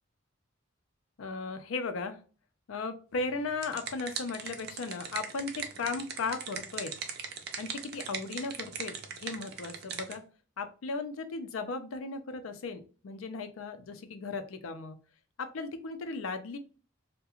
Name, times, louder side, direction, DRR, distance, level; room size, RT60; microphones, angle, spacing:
voice 1, 1.2-2.2 2.7-6.9 7.6-10.2 10.6-15.0 15.4-16.6, left 4 dB, 90° left, 9 dB, 0.5 m, -36 dB
sound 1, 3.3-10.2, right 6 dB, 50° right, 0.4 m, -40 dB
2.3 x 2.1 x 2.9 m, 0.37 s
head